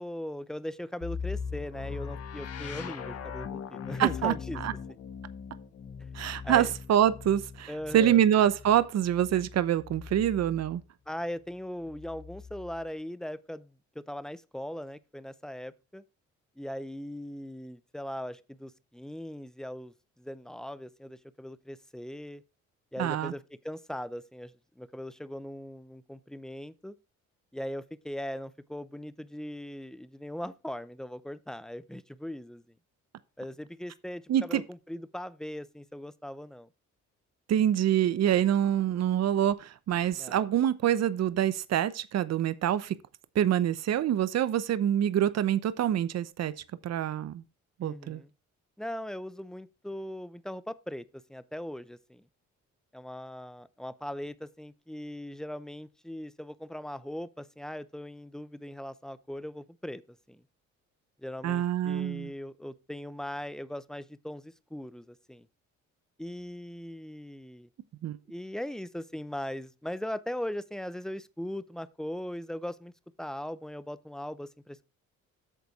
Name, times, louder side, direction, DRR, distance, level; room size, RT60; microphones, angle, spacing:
voice 1, 0.0-4.6 6.0-6.1 6.4-6.7 7.7-8.2 11.1-16.0 16.6-22.4 22.9-26.9 27.5-32.6 33.4-36.7 40.1-40.4 47.8-48.3 48.8-52.2 52.9-60.0 60.3-60.4 61.2-65.5 66.2-67.7 68.3-72.9 73.2-74.8, left 1 dB, ahead, 0.7 m, -39 dB
sound 1, 1.0-10.8 11.8-12.9, left 6 dB, 55° left, 1.4 m, -40 dB
voice 2, 4.0-4.3 4.6-4.7 6.1-10.8 23.0-23.3 34.3-34.6 37.5-42.9 43.3-46.5 46.8-47.4 47.8-48.2 61.4-62.3 68.0-68.2, right 10 dB, 60° right, 0.8 m, -26 dB
8.6 x 6.8 x 4.8 m
cardioid pair, 90°, 30 cm